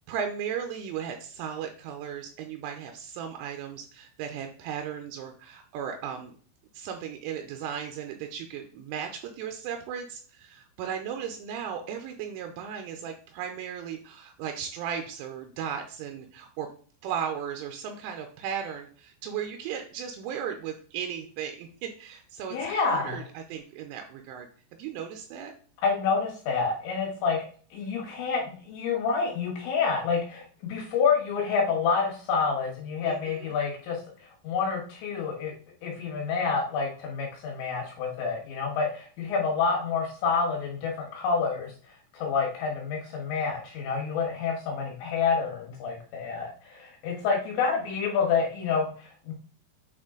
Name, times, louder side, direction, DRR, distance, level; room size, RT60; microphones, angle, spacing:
voice 1, 0.1-6.3 6.7-16.7 17.0-24.5 24.8-25.5 33.1-33.6, right 8 dB, 85° right, 5 dB, 3.1 m, -36 dB
voice 2, 22.5-23.2 25.8-27.4 27.7-35.5 35.8-41.7 42.1-49.3, left 5 dB, 70° left, -2 dB, 3.4 m, -28 dB
8.9 x 3.7 x 3.7 m, 0.43 s
omnidirectional pair, 5.9 m